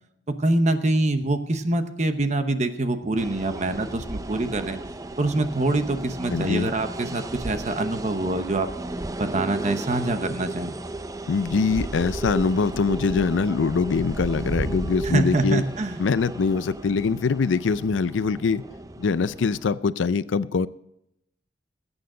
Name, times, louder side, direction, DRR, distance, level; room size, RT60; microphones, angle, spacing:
voice 1, 0.3-4.8 5.2-8.7 9.2-10.7 15.0-16.0, right 2 dB, 40° right, 8 dB, 0.9 m, -25 dB
sound 1, 3.2-19.8, right 2 dB, 20° right, 0.5 m, -34 dB
voice 2, 6.3-6.7 11.3-15.6 16.0-18.6 19.0-20.7, left 4 dB, 80° left, 16 dB, 0.5 m, -23 dB
20.5 x 9.0 x 3.9 m, 0.81 s
head